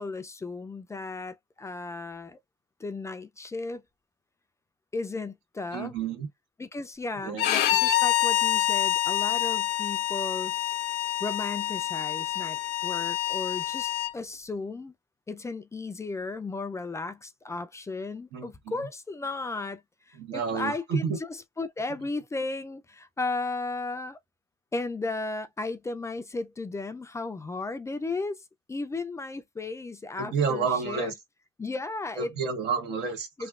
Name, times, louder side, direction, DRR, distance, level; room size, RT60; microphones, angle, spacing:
voice 1, 0.0-2.4 2.8-3.8 4.9-5.9 6.6-10.5 11.2-14.9 15.3-21.1 21.6-24.2 24.7-28.4 28.7-31.1 31.6-32.3 33.4-33.5, left 3 dB, 15° left, 0.4 m, -35 dB
voice 2, 5.7-6.3 7.2-7.5 18.3-18.5 20.2-21.2 30.2-31.1 32.2-33.5, right 5 dB, 85° right, 1.2 m, -30 dB
Bowed string instrument, 7.4-14.1, left 13 dB, 80° left, 0.6 m, -27 dB
3.1 x 2.3 x 2.4 m
cardioid pair, 110°, 17 cm